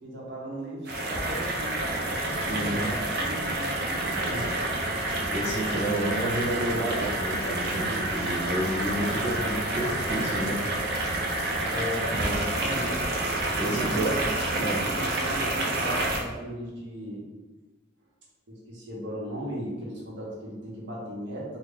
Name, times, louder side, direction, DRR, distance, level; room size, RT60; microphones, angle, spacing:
voice 1, 0.0-4.6 11.7-13.1 13.6-14.2 14.5-17.2 18.5-21.6, right 1 dB, 70° right, -4 dB, 1.0 m, -36 dB
sound 1, 0.9-16.2, right 1 dB, 55° right, 0.5 m, -29 dB
voice 2, 2.5-2.9 5.3-10.6 13.6-14.1 14.6-14.8, right 1 dB, 55° left, -4 dB, 1.0 m, -30 dB
3.1 x 2.2 x 3.6 m, 1.2 s
head